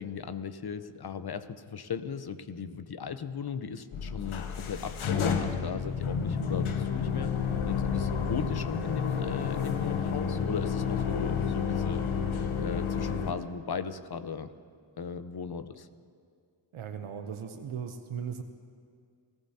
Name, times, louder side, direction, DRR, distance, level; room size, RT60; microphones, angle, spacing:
voice 1, 0.0-7.3 7.6-12.0 12.6-14.5 15.0-15.9, left 6 dB, 50° left, 11 dB, 0.8 m, -37 dB
sound 1, 3.9-13.3, left 6 dB, 85° left, 1.0 m, -30 dB
voice 2, 16.7-18.4, right 7 dB, 90° right, 7 dB, 0.9 m, -37 dB
29.5 x 14.5 x 2.8 m, 2.2 s
cardioid pair, 40°, 47 cm